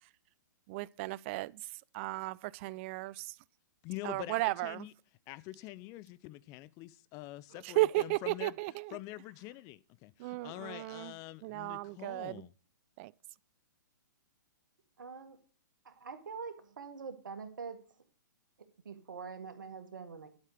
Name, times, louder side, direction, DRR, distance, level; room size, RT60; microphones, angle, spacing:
voice 1, 0.7-1.6 1.9-3.3 4.0-4.9 7.6-9.0 10.2-11.1 11.4-12.4 13.0-13.1, right 19 dB, 40° right, 0.3 m, -34 dB
voice 2, 3.8-4.9 5.3-8.6 8.9-12.5, left 18 dB, 30° left, 0.5 m, -45 dB
voice 3, 15.0-15.4 15.9-17.8 18.9-20.3, right 5 dB, 75° right, 1.8 m, -44 dB
11.0 x 6.4 x 5.0 m
hypercardioid pair, 125°, 11 cm